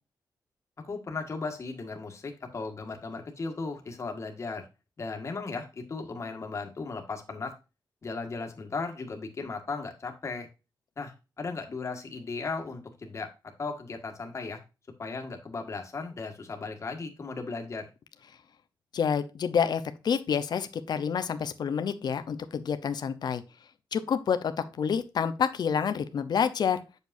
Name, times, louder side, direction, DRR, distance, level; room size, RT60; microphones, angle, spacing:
voice 1, 0.8-4.6 5.0-7.5 8.0-10.5 11.0-13.3 13.6-14.6 15.0-17.9, left 4 dB, 35° left, 3 dB, 1.7 m, -36 dB
voice 2, 18.9-23.4 23.9-26.8, left 7 dB, 60° left, 10 dB, 0.8 m, -28 dB
8.3 x 6.7 x 2.6 m, 0.29 s
wide cardioid pair, 155°, 8 cm